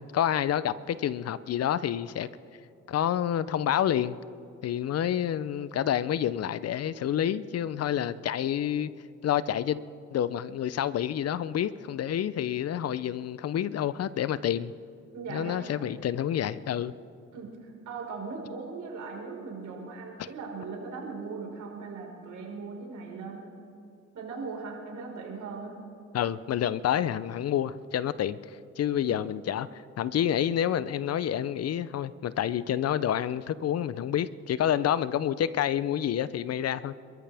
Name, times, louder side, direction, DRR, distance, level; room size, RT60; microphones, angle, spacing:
voice 1, 0.0-2.3 2.9-4.2 4.6-8.9 9.2-9.8 10.1-14.7 15.3-16.9 20.2-20.3 26.1-36.9, left 10 dB, 55° left, 16 dB, 0.6 m, -28 dB
voice 2, 15.1-15.6 17.3-23.5 24.1-25.7 29.0-29.2, right 4 dB, 75° right, -1 dB, 4.7 m, -39 dB
28.0 x 13.5 x 3.5 m, 2.5 s
cardioid pair, 90°, 30 cm